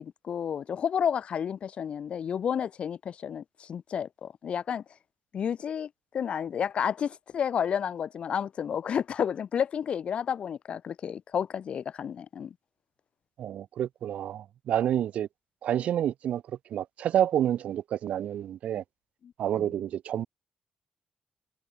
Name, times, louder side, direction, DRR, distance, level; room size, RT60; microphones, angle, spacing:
voice 1, 0.0-4.8 5.3-12.5 19.2-19.7, left 8 dB, 60° left, 1.2 m, -31 dB
voice 2, 13.4-15.3 15.6-16.4 16.7-18.8 19.4-20.3, right 10 dB, 85° right, 3.6 m, -28 dB
cardioid pair, 130°, 2 cm